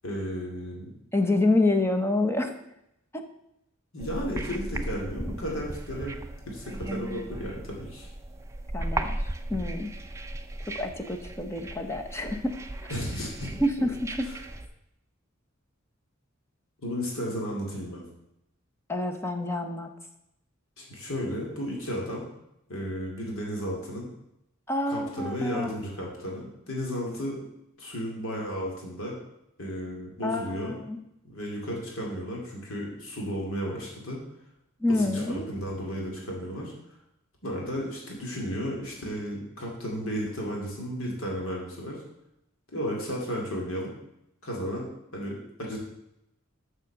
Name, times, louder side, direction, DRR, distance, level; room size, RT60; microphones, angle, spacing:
voice 1, 0.0-1.0 3.9-6.2 6.4-8.1 12.9-13.5 13.8-13.9 14.2-14.4 16.8-18.0 20.8-22.3 22.7-24.1 24.9-27.5 27.8-29.2 29.6-30.8 31.3-34.2 34.9-36.7 37.4-42.0 42.7-43.9 44.4-45.8, equal, 70° left, -2 dB, 2.5 m, -34 dB
voice 2, 1.1-2.5 3.1-3.2 8.7-9.2 9.5-9.9 10.7-12.6 13.6-14.3 18.9-19.9 24.7-25.7 30.2-31.0 34.8-35.4, left 2 dB, 10° left, 4 dB, 0.8 m, -27 dB
sound 1, 4.0-14.7, right 1 dB, 15° right, 0.5 m, -36 dB
7.2 x 6.3 x 6.6 m, 0.82 s
head